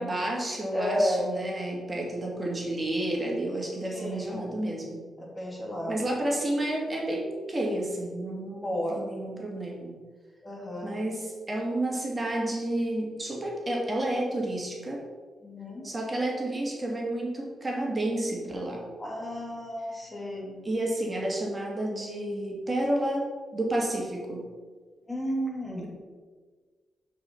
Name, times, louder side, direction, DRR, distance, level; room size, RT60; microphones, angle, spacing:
voice 1, 0.0-5.0 5.9-10.0 10.8-15.0 15.8-18.8 20.6-24.5, right 1 dB, 30° right, -2 dB, 2.4 m, -30 dB
voice 2, 0.7-1.4 3.9-4.5 5.2-6.0 8.6-9.0 10.4-11.0 15.4-15.9 19.0-20.6 25.1-25.9, equal, 20° left, -1 dB, 2.4 m, -32 dB
6.2 x 5.0 x 5.8 m, 1.5 s
cardioid pair, 60°, 0 cm